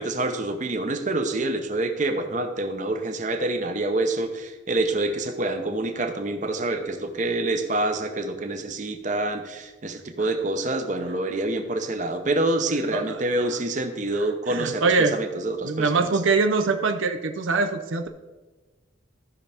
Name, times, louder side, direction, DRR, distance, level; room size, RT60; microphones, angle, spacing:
voice 1, 0.0-16.1, right 2 dB, 40° right, 6 dB, 0.8 m, -27 dB
voice 2, 12.9-13.5 14.1-15.2 15.6-18.1, right 4 dB, 75° right, 6 dB, 0.6 m, -24 dB
14.5 x 5.6 x 3.5 m, 1.2 s
head